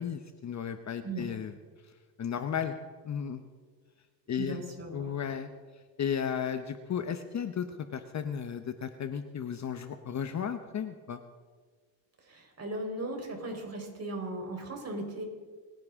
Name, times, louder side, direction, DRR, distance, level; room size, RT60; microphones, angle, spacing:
voice 1, 0.0-1.5 2.2-2.8 3.0-3.4 4.3-4.6 4.9-5.5 6.0-7.7 7.9-11.2, left 8 dB, 35° left, 9 dB, 0.9 m, -34 dB
voice 2, 4.4-5.1 12.2-15.2, right 2 dB, 30° right, 2 dB, 4.4 m, -37 dB
28.5 x 10.5 x 3.7 m, 1.5 s
supercardioid pair, 85°, 47 cm